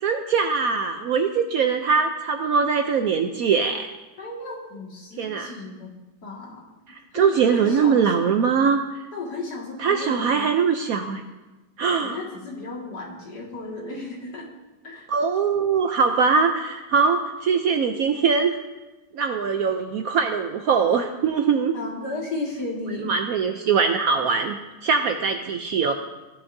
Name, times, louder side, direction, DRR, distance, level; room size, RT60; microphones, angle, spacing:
voice 1, 0.0-3.9 5.2-5.5 7.1-8.8 9.8-11.2 11.8-12.2 15.1-18.6 19.1-21.7 23.0-25.9, right 5 dB, 65° right, 6 dB, 0.9 m, -22 dB
voice 2, 4.2-5.9 6.2-6.6 7.1-8.5 9.1-10.5 12.0-14.5 14.8-15.1 21.7-23.2, left 2 dB, 60° left, -3 dB, 2.6 m, -34 dB
15.5 x 10.0 x 2.7 m, 1.1 s
omnidirectional pair, 1.9 m